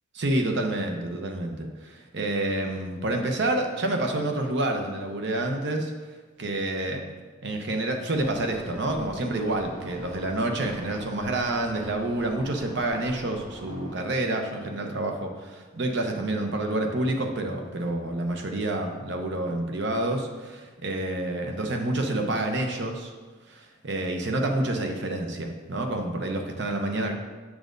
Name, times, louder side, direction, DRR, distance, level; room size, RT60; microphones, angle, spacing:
voice 1, 0.1-5.9 6.4-7.0 7.4-23.1 23.5-27.1, right 1 dB, 55° right, 3 dB, 0.8 m, -28 dB
sound 1, 8.1-14.0, equal, 30° right, 1.1 m, -44 dB
7.2 x 6.2 x 2.6 m, 1.4 s
head